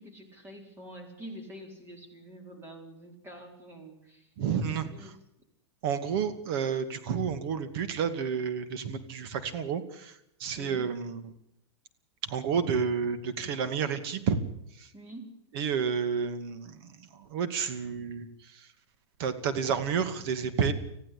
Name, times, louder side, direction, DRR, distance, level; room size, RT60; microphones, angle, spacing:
voice 1, 0.0-4.3 4.9-5.1 10.6-10.8 14.9-15.3, right 1 dB, 15° right, 4 dB, 4.6 m, -46 dB
voice 2, 4.4-5.1 5.8-11.3 12.2-14.4 14.7-14.9 15.5-18.7 19.2-20.7, right 6 dB, 55° right, 10 dB, 2.5 m, -30 dB
20.0 x 15.0 x 8.6 m, 0.77 s
hypercardioid pair, 135°, 15 cm